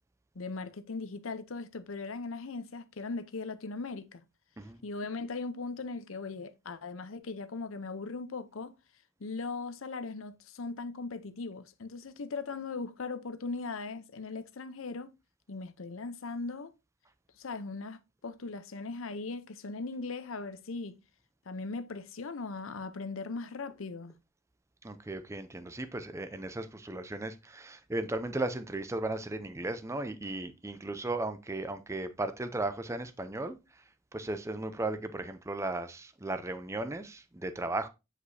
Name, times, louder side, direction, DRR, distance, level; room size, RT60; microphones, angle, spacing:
voice 1, 0.3-4.2 4.8-8.7 9.2-15.1 15.5-16.7 17.4-21.0 21.5-24.1, left 3 dB, 75° left, 0.7 m, -39 dB
voice 2, 24.8-33.8 34.1-37.9, right 2 dB, 15° right, 0.5 m, -36 dB
8.1 x 4.9 x 2.7 m
head